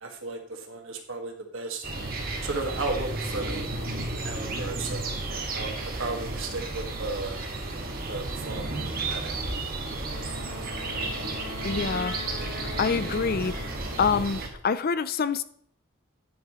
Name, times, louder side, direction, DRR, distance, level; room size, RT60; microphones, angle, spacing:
voice 1, 0.0-1.8 2.4-3.7 4.2-7.4 8.1-9.4, right 3 dB, 65° right, 2 dB, 1.8 m, -35 dB
sound 1, 1.8-14.5, right 2 dB, 45° right, 1.8 m, -33 dB
Wind instrument woodwind instrument, 10.1-14.3, left 3 dB, 80° left, 2.1 m, -40 dB
voice 2, 11.6-12.2 12.8-13.6 14.0-15.4, left 5 dB, 45° left, 14 dB, 0.5 m, -26 dB
10.5 x 9.5 x 3.1 m, 0.65 s
head